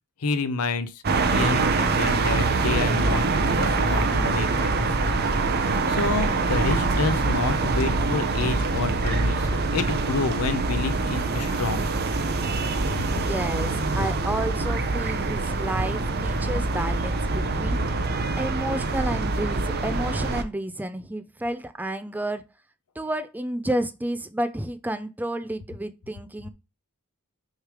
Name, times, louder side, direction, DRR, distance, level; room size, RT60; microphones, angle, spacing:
voice 1, 0.2-1.0 1.3-5.2 5.9-11.8 12.9-13.1, left 3 dB, 80° left, 0.7 m, -29 dB
sound 1, 1.0-20.4, right 3 dB, 45° right, 0.7 m, -24 dB
voice 2, 13.0-17.9 18.4-22.4 23.0-26.5, right 1 dB, 10° right, 0.5 m, -31 dB
6.4 x 3.2 x 4.9 m
head